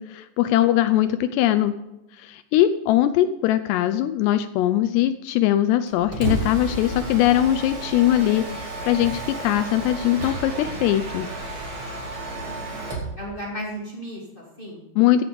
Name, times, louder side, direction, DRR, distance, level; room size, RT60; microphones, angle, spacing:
voice 1, 0.0-1.7 2.1-11.3 15.0-15.2, left 12 dB, 85° left, 11 dB, 2.4 m, -21 dB
Mechanisms, 5.9-13.1, right 2 dB, 35° right, 2.5 m, -32 dB
voice 2, 12.4-12.9 13.2-14.9, equal, 30° left, -3 dB, 0.9 m, -35 dB
15.0 x 8.6 x 5.2 m, 0.92 s
omnidirectional pair, 5.4 m